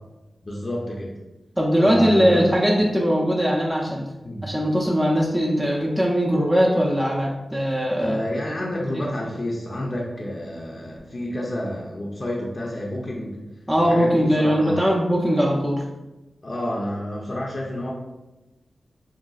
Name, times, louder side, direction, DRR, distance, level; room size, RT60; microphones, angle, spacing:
voice 1, 0.4-1.1 1.8-2.5 4.2-4.4 8.0-13.4 13.7-15.0 16.4-17.9, left 1 dB, 45° left, -4 dB, 0.5 m, -29 dB
voice 2, 1.6-4.0 4.4-8.1 8.9-9.1 13.7-15.8, equal, 10° right, -3 dB, 0.5 m, -20 dB
3.8 x 2.3 x 2.3 m, 1.1 s
cardioid pair, 45°, 0 cm